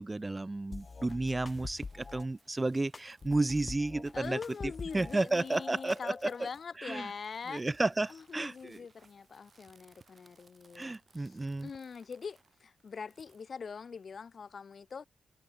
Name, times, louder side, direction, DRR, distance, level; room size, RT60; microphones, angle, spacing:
voice 1, 0.0-4.4 4.9-6.5 6.8-7.1 7.5-8.8 10.8-11.7, right 2 dB, 20° right, 0.4 m, -32 dB
sound 1, 0.7-2.3 2.9-5.2 5.5-6.5, left 4 dB, 35° left, 2.2 m, -45 dB
sound 2, 0.7-13.4, right 4 dB, 40° right, 2.6 m, -65 dB
voice 2, 4.1-7.6 8.1-15.1, left 5 dB, 50° left, 1.5 m, -43 dB
cardioid pair, 80°, 0 cm